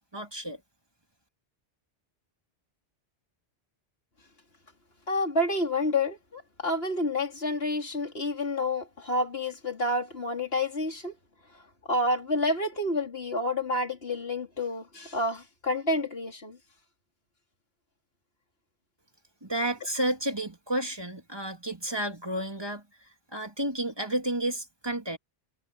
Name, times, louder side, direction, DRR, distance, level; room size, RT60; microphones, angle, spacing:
voice 1, 0.1-0.6 19.4-22.8 23.3-25.2, right 1 dB, 25° right, 3.0 m, -31 dB
voice 2, 5.1-11.1 11.9-16.6, left 1 dB, 70° left, 3.7 m, -29 dB
omnidirectional pair, 1.1 m